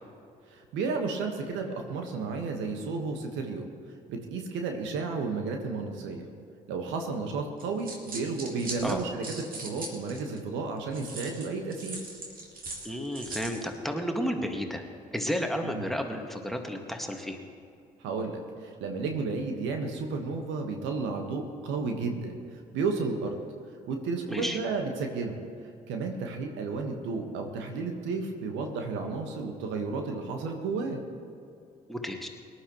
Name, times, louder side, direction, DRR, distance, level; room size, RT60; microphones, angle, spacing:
voice 1, 0.5-3.7 4.1-6.3 6.7-12.0 15.6-15.8 18.0-23.4 23.9-25.4 25.9-31.0, right 4 dB, 65° right, 4 dB, 1.5 m, -32 dB
sound 1, 7.6-10.4 10.9-13.6, right 2 dB, 40° right, 2.7 m, -40 dB
voice 2, 12.8-14.8 15.1-17.4 24.3-24.6 31.9-32.3, equal, ahead, 4 dB, 1.9 m, -32 dB
24.0 x 11.5 x 3.1 m, 2.5 s
figure-of-eight pair, 45°, 21 cm